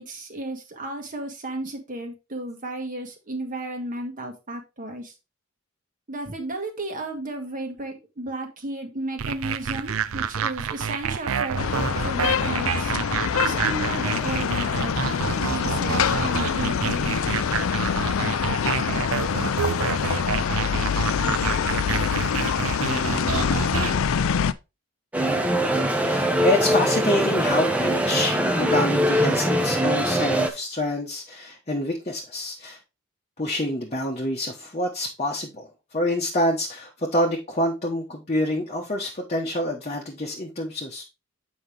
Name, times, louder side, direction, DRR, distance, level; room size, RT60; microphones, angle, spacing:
voice 1, 0.0-5.1 6.1-12.9 13.4-17.4, right 1 dB, 40° right, 4 dB, 1.5 m, -34 dB
sound 1, 9.2-23.9, right 7 dB, 75° right, 0.5 m, -29 dB
sound 2, 11.6-24.5, left 7 dB, 70° left, 0.4 m, -25 dB
voice 2, 22.8-24.1 26.0-32.8 33.4-41.0, left 1 dB, 30° left, 0 dB, 1.1 m, -27 dB
sound 3, 25.1-30.5, equal, 5° right, 0.8 m, -22 dB
7.8 x 5.2 x 3.3 m, 0.26 s
head